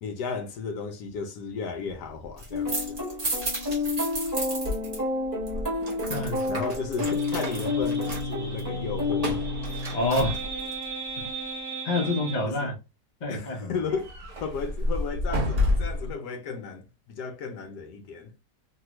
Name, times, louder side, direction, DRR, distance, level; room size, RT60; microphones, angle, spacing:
voice 1, 0.0-3.0 6.5-9.4 12.5-12.7 13.3-14.1 14.4-18.3, left 5 dB, 75° left, 1.2 m, -34 dB
sound 1, 2.2-5.0 5.2-10.8 13.9-16.1, left 1 dB, 35° right, 0.7 m, -31 dB
sound 2, 2.5-10.0, left 3 dB, 15° right, 1.1 m, -30 dB
voice 2, 6.1-6.5 9.9-10.4 11.2-11.3 11.8-12.8 13.2-13.7, left 2 dB, 40° left, 0.6 m, -27 dB
sound 3, 7.1-12.5, right 2 dB, 65° right, 1.3 m, -35 dB
3.3 x 2.3 x 2.9 m
omnidirectional pair, 1.9 m